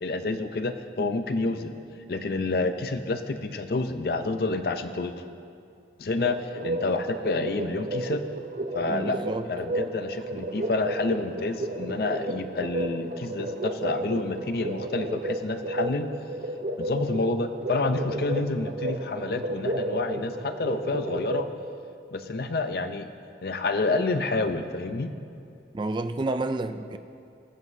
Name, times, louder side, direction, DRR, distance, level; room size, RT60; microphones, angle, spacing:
voice 1, 0.0-1.8 2.1-5.2 6.0-8.2 8.7-9.2 9.5-16.1 16.8-21.5 22.1-23.1 23.4-25.1, left 3 dB, 60° left, 9 dB, 0.5 m, -29 dB
sound 1, 6.2-21.5, right 1 dB, 50° right, 0.7 m, -32 dB
voice 2, 8.9-9.5 25.7-27.0, right 2 dB, 25° right, 9 dB, 0.3 m, -29 dB
22.0 x 7.6 x 2.7 m, 2.5 s
head